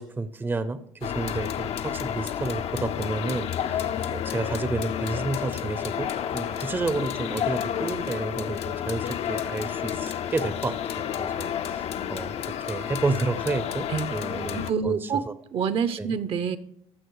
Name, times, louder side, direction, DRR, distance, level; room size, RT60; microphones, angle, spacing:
voice 1, 0.0-12.3 12.6-15.3 16.0-16.2, right 3 dB, 15° right, 13 dB, 0.7 m, -31 dB
sound 1, 1.0-14.7, left 9 dB, 60° left, 0.7 m, -30 dB
voice 2, 14.5-15.2 15.5-16.6, right 6 dB, 50° right, 14 dB, 0.8 m, -26 dB
14.5 x 6.1 x 4.8 m, 0.70 s
cardioid pair, 110°, 12 cm